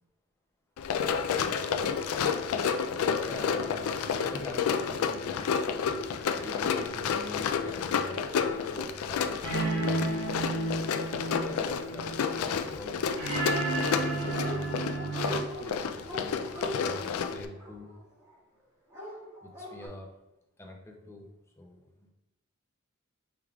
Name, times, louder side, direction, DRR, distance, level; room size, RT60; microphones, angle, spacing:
Run, 0.8-17.5, left 6 dB, 85° left, 0.3 m, -30 dB
voice 1, 3.2-8.2 8.6-9.3 9.7-10.6 11.4-13.1 13.9-15.1 15.6-17.9 19.4-20.1 20.6-21.3 21.6-22.1, left 1 dB, 10° left, 1 dB, 0.5 m, -45 dB
sound 1, 9.4-15.4, right 2 dB, 75° right, 1.0 m, -32 dB
Dog, 13.5-14.0 14.2-14.6 14.9-18.3 18.9-19.9, equal, 15° right, 1.5 m, -40 dB
4.7 x 3.6 x 2.3 m, 0.91 s
head